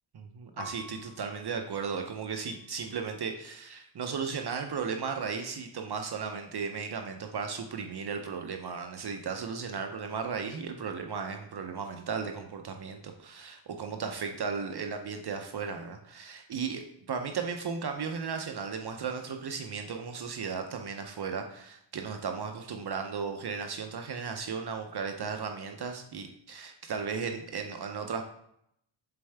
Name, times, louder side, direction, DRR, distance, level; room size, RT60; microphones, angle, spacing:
voice 1, 0.1-28.2, right 5 dB, 55° right, 5 dB, 0.6 m, -35 dB
Piano, 0.6-3.3 4.0-4.7, left 2 dB, 65° left, 1.0 m, -51 dB
6.9 x 4.4 x 3.3 m, 0.74 s
wide cardioid pair, 110°, 47 cm